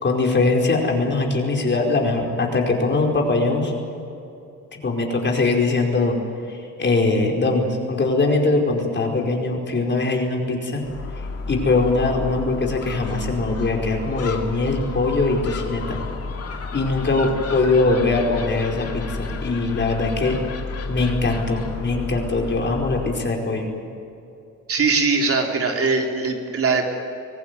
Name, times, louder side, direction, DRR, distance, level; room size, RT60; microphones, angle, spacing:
voice 1, 0.0-3.7 4.8-6.2 6.5-10.8 11.5-16.0 16.7-20.4 20.9-23.7, left 3 dB, 35° left, 1 dB, 4.9 m, -21 dB
Gull seagull, 10.8-23.2, left 3 dB, 55° left, 2.4 m, -31 dB
voice 2, 24.7-26.9, right 4 dB, 50° right, 2 dB, 3.6 m, -21 dB
24.0 x 17.5 x 9.5 m, 2.7 s
cardioid pair, 90°, 30 cm